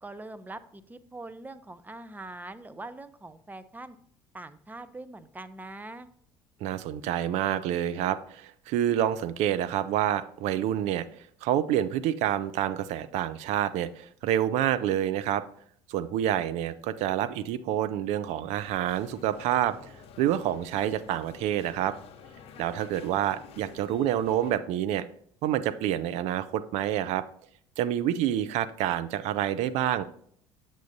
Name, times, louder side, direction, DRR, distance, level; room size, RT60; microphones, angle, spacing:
voice 1, 0.0-4.0 4.3-6.1, right 2 dB, 15° right, 12 dB, 0.5 m, -43 dB
voice 2, 6.6-11.1 11.4-15.4 15.9-19.8 20.2-21.9 22.6-25.0 25.4-27.2 27.8-30.0, right 11 dB, 60° right, 13 dB, 0.5 m, -28 dB
sound 1, 18.6-24.6, left 6 dB, 50° left, 0.8 m, -49 dB
7.5 x 7.1 x 2.6 m, 0.62 s
hypercardioid pair, 65°, 13 cm